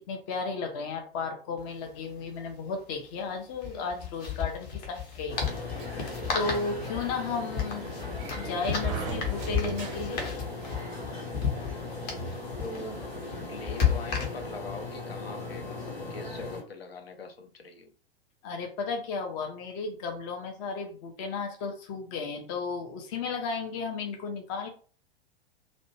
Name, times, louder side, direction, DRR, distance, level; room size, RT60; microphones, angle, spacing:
voice 1, 0.0-5.9 6.3-7.9 8.3-10.3 18.4-24.7, left 4 dB, 25° left, 4 dB, 0.4 m, -34 dB
sound 1, 1.6-1.7 1.9-2.0 3.5-14.7, left 7 dB, 40° left, 0.8 m, -33 dB
sound 2, 5.3-16.6, left 2 dB, 85° left, 1.1 m, -38 dB
Sliding door, 5.8-10.4, right 5 dB, 35° right, 0.5 m, -40 dB
voice 2, 12.6-13.0 13.5-17.9, left 3 dB, 70° left, 5 dB, 0.6 m, -42 dB
2.5 x 2.1 x 2.8 m, 0.41 s
figure-of-eight pair, 100°, 31 cm